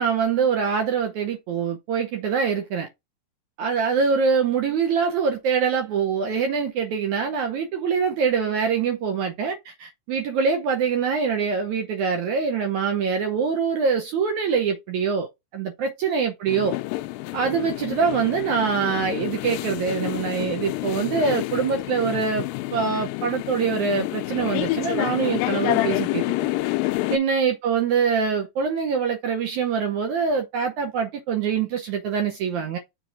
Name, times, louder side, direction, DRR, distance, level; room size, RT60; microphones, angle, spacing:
voice 1, 0.0-2.9 3.6-16.8 17.3-26.5 27.1-32.8, right 6 dB, 70° right, 2.0 m, -24 dB
sound 1, 16.5-27.2, left 18 dB, 80° left, 2.2 m, -28 dB
7.1 x 3.8 x 3.5 m
omnidirectional pair, 4.1 m